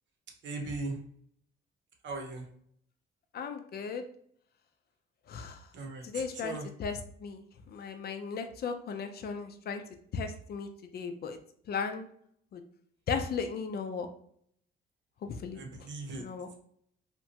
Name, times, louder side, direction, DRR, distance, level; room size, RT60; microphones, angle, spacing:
voice 1, 0.4-1.0 2.0-2.5 5.7-6.7 15.6-16.3, right 3 dB, 65° right, 3 dB, 0.8 m, -38 dB
voice 2, 3.3-4.1 5.3-5.7 6.0-9.8 10.1-11.4 11.7-12.1 12.5-12.6 13.1-14.1 15.2-15.6 16.2-16.5, left 5 dB, 50° left, 7 dB, 0.5 m, -36 dB
2.9 x 2.2 x 2.8 m, 0.63 s
cardioid pair, 90°, 20 cm